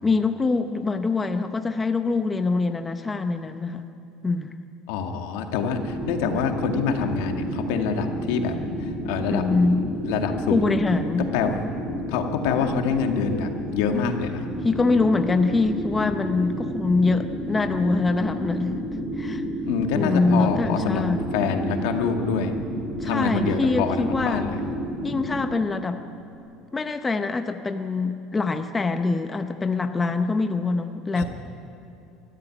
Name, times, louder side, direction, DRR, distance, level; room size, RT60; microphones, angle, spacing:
voice 1, 0.0-3.8 4.2-4.5 9.3-9.8 10.5-11.3 14.6-18.9 19.2-19.4 19.9-21.2 23.0-24.5 25.0-26.0 26.7-31.2, left 3 dB, 15° left, 7 dB, 0.7 m, -24 dB
voice 2, 4.9-8.6 8.8-9.4 10.0-10.7 11.3-11.7 12.1-14.3 19.7-21.0 21.3-22.5 23.0-24.6 31.2-31.3, left 6 dB, 80° left, 4 dB, 2.1 m, -26 dB
sound 1, 5.7-25.4, right 1 dB, ahead, 4.7 m, -31 dB
Bass guitar, 20.1-26.4, right 3 dB, 80° right, 1.7 m, -41 dB
22.5 x 14.0 x 10.0 m, 2.8 s
cardioid pair, 165°, 0 cm